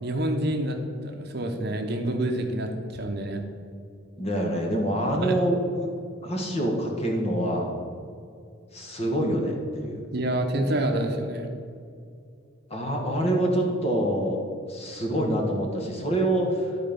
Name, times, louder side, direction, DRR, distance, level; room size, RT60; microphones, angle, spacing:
voice 1, 0.0-3.4 5.2-5.4 10.1-11.5, right 1 dB, 50° right, 4 dB, 0.8 m, -27 dB
voice 2, 4.2-5.9 6.2-7.7 8.7-10.1 12.7-14.4 14.7-16.8, right 1 dB, 30° left, 0 dB, 1.3 m, -26 dB
11.5 x 4.2 x 5.2 m, 2.4 s
head